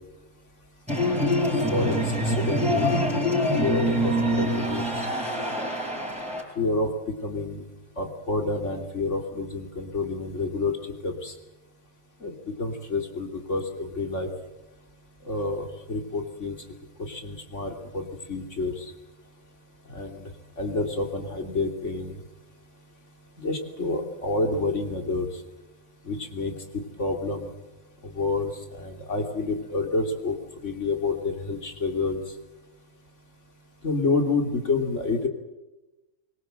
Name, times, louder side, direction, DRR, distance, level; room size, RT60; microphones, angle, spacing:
sound 1, 0.9-6.4, equal, 5° right, 5.9 m, -25 dB
voice 1, 1.4-3.0 3.5-4.9 6.6-7.6 8.0-10.7 11.0-11.3 12.2-14.3 15.3-16.6 17.0-18.9 19.9-20.2 20.6-22.2 23.4-25.3 26.1-27.5 28.0-30.4 30.6-32.2 33.8-35.3, left 3 dB, 55° left, 4 dB, 3.4 m, -29 dB
24.0 x 22.5 x 7.8 m, 1.0 s
omnidirectional pair, 1.5 m